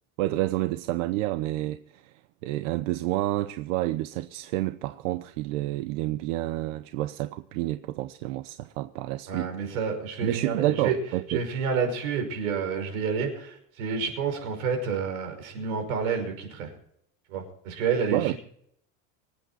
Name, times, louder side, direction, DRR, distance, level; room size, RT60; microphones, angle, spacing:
voice 1, 0.2-2.1 2.4-9.5 10.2-11.4 18.1-18.3, right 16 dB, 65° right, 0.8 m, -29 dB
voice 2, 9.3-11.0 11.3-16.7 17.3-18.3, right 5 dB, 85° right, 5.7 m, -29 dB
25.0 x 8.7 x 4.2 m
cardioid pair, 170°, 41 cm